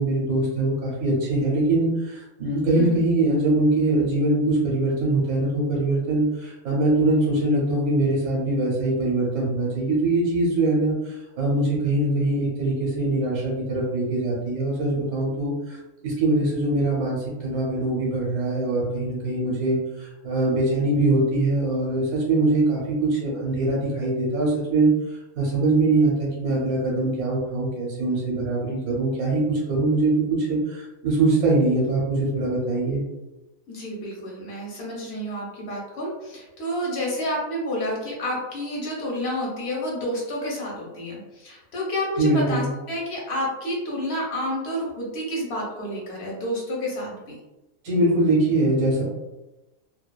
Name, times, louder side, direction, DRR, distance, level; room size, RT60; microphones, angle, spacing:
voice 1, 0.0-15.8 16.0-33.0 42.2-42.7 47.8-49.0, right 2 dB, 80° right, -5 dB, 1.1 m, -23 dB
voice 2, 33.7-47.1, left 1 dB, 55° left, -3 dB, 0.9 m, -29 dB
2.6 x 2.2 x 2.2 m, 1.0 s
omnidirectional pair, 1.5 m